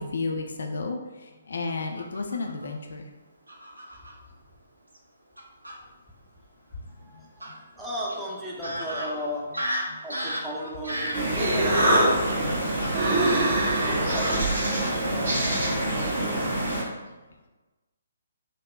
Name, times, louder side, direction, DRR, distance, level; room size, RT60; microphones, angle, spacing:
voice 1, 0.0-3.1 7.1-7.7 9.9-10.0, left 3 dB, 60° left, 3 dB, 0.3 m, -33 dB
Fowl / Bird vocalization bird call bird song, 2.0-2.7 3.5-4.1 4.9-5.0 5.4-5.8 7.4-7.5 8.1-8.2 8.6-14.5 14.8-15.1 15.4-15.6 16.0-16.2, equal, 80° right, 0.5 m, -34 dB
voice 2, 6.9-9.6 10.0-12.6 12.9-14.6 15.1-15.7 16.0-16.5, equal, 5° right, -5 dB, 0.5 m, -36 dB
Human voice, 10.9-16.1, right 1 dB, 45° right, 1.0 m, -26 dB
sound 1, 11.1-16.8, right 1 dB, 60° right, 1.4 m, -27 dB
3.4 x 2.1 x 2.3 m, 1.2 s
figure-of-eight pair, 135°, 0 cm